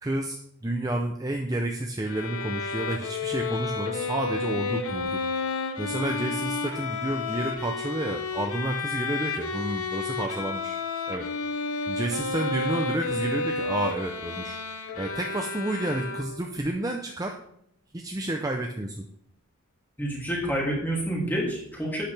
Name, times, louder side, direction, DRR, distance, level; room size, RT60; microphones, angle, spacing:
voice 1, 0.0-5.2 5.8-10.8 11.1-11.3 11.9-14.6 14.9-17.4 17.9-19.0, right 1 dB, 15° right, 3 dB, 0.6 m, -30 dB
Bowed string instrument, 2.1-16.6, left 4 dB, 85° left, 1.1 m, -31 dB
voice 2, 20.0-22.0, right 1 dB, 10° left, -3 dB, 2.7 m, -28 dB
11.5 x 8.8 x 3.4 m, 0.71 s
head